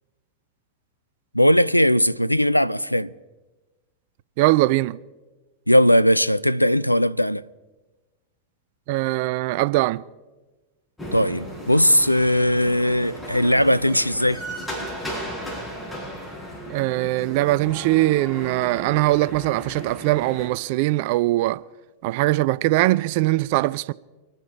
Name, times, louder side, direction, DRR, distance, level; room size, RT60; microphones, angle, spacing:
voice 1, 1.3-3.1 5.7-7.4 11.1-14.4, equal, 90° left, 0.4 m, -19 dB
voice 2, 4.4-5.0 8.9-10.0 16.7-21.6 22.0-23.9, right 18 dB, 50° right, 0.4 m, -21 dB
sound 1, 11.0-20.5, equal, 10° left, 5.0 m, -35 dB
25.5 x 9.1 x 4.4 m
figure-of-eight pair, 90°, 0 cm